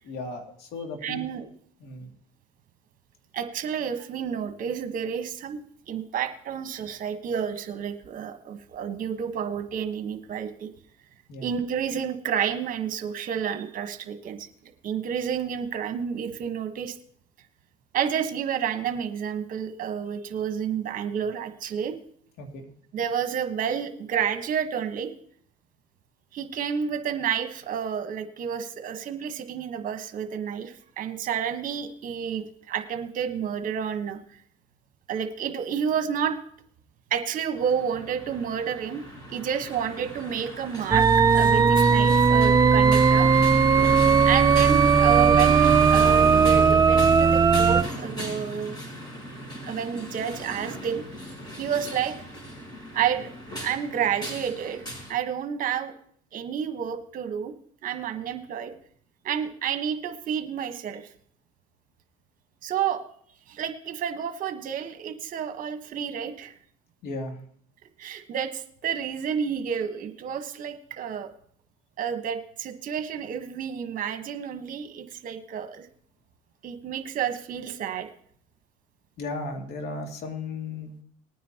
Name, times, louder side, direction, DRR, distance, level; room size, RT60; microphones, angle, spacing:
voice 1, 0.0-1.2 1.8-2.1 11.3-11.5 22.4-22.7 43.8-44.2 67.0-67.4 79.2-80.9, left 3 dB, 70° left, 3 dB, 2.4 m, -36 dB
voice 2, 1.0-1.4 3.3-5.6 5.9-10.7 11.4-14.5 14.8-17.0 17.9-22.0 22.9-25.1 26.3-34.2 35.1-36.4 37.1-39.0 39.3-41.1 41.3-43.3 44.2-48.8 49.7-51.0 51.6-52.1 52.9-53.3 53.6-54.8 55.1-55.9 56.3-57.5 57.8-58.7 59.2-61.1 62.6-63.0 63.5-66.5 68.0-71.3 72.0-75.9 76.6-78.1, right 8 dB, 50° right, 7 dB, 1.2 m, -30 dB
sound 1, 37.5-55.1, equal, 25° left, 5.6 m, -36 dB
sound 2, 40.9-47.8, right 5 dB, 20° right, 0.4 m, -18 dB
20.0 x 9.3 x 2.9 m, 0.62 s
supercardioid pair, 95°, 17 cm